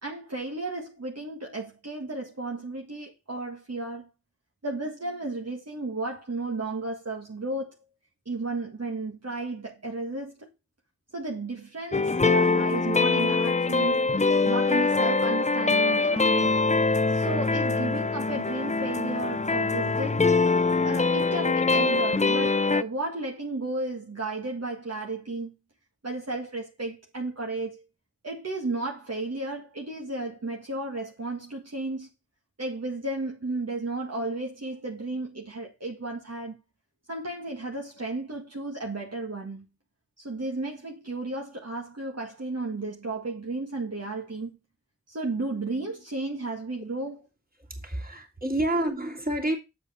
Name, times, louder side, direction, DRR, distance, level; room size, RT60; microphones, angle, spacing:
voice 1, 0.0-4.1 4.6-7.7 8.3-10.5 11.1-14.1 14.5-16.6 17.1-20.2 20.8-25.5 26.0-27.8 28.2-32.1 32.6-36.6 37.1-39.7 40.2-44.5 45.1-47.2, right 2 dB, 60° right, 1.9 m, -33 dB
sound 1, 11.9-22.8, left 3 dB, 25° left, 0.5 m, -23 dB
voice 2, 47.7-49.6, right 1 dB, 30° right, 2.9 m, -28 dB
8.0 x 7.5 x 4.4 m
wide cardioid pair, 60°, 29 cm